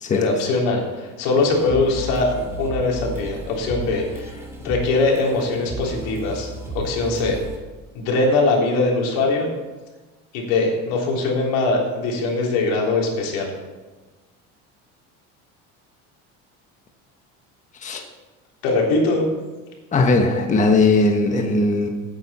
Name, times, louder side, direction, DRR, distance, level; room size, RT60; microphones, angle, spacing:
voice 1, 0.1-2.3 2.6-4.3 4.6-6.5 6.7-7.4 7.9-9.5 10.3-13.5 18.6-19.3, left 3 dB, 85° left, -1 dB, 3.5 m, -21 dB
sound 1, 1.4-7.6, right 2 dB, 10° right, 2.7 m, -34 dB
voice 2, 19.9-21.9, left 3 dB, 25° left, 3 dB, 1.2 m, -18 dB
15.5 x 9.0 x 4.3 m, 1.2 s
cardioid pair, 145°, 32 cm